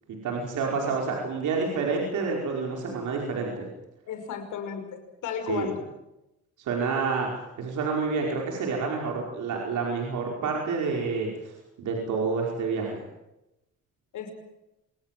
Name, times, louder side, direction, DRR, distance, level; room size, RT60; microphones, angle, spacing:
voice 1, 0.2-3.7 5.5-5.7 6.6-7.3 7.6-11.5 11.8-13.0, right 4 dB, 80° right, 0 dB, 5.3 m, -28 dB
voice 2, 4.1-5.8 14.1-14.3, left 7 dB, 80° left, 7 dB, 5.8 m, -34 dB
26.5 x 20.0 x 7.7 m, 0.93 s
cardioid pair, 90°, 30 cm